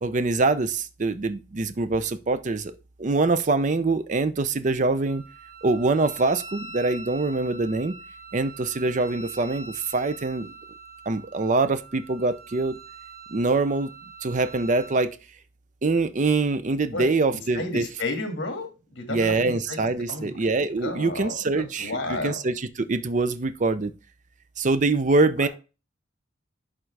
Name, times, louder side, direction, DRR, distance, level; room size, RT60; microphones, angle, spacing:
voice 1, 0.0-2.7 3.0-5.2 5.6-7.9 8.3-10.5 11.1-12.8 13.3-13.9 14.2-15.2 15.8-17.9 19.1-23.9 24.6-25.5, right 3 dB, 40° right, 0.5 m, -24 dB
Wind instrument woodwind instrument, 5.1-15.0, right 4 dB, 90° right, 3.5 m, -44 dB
voice 2, 17.5-19.8 20.1-20.5 20.8-21.3 21.8-22.4 25.4-25.5, left 2 dB, 60° left, 1.8 m, -32 dB
11.0 x 3.7 x 3.3 m
head